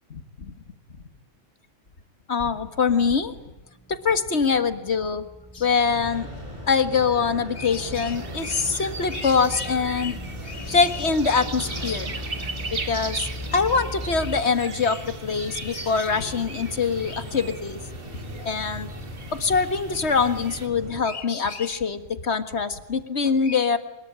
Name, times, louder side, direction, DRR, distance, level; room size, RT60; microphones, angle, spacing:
voice 1, 2.3-3.4 3.9-5.3 5.5-6.3 6.7-10.2 10.4-17.8 18.5-18.9 19.3-23.8, left 5 dB, 60° left, 11 dB, 1.9 m, -24 dB
sound 1, 3.6-14.4, left 1 dB, ahead, 1.5 m, -40 dB
sound 2, 5.8-21.0, equal, 25° right, 7.7 m, -38 dB
sound 3, 8.1-20.7, right 4 dB, 45° right, 1.8 m, -39 dB
25.0 x 22.0 x 8.9 m, 1.0 s
omnidirectional pair, 1.3 m